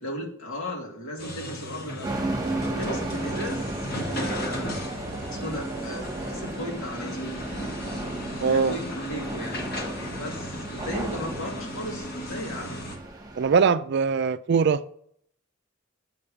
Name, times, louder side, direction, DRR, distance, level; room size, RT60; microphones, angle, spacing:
voice 1, 0.0-2.2 2.6-3.7 4.1-4.9 5.3-7.4 8.5-9.7 10.2-12.8, equal, 85° left, 2.6 m, -36 dB
sound 1, 1.2-13.0, left 1 dB, 55° left, 1.8 m, -36 dB
sound 2, 2.0-13.6, right 2 dB, 20° right, 1.3 m, -34 dB
voice 2, 8.4-8.8 13.4-14.8, right 5 dB, 60° right, 0.4 m, -21 dB
7.7 x 5.2 x 6.9 m
head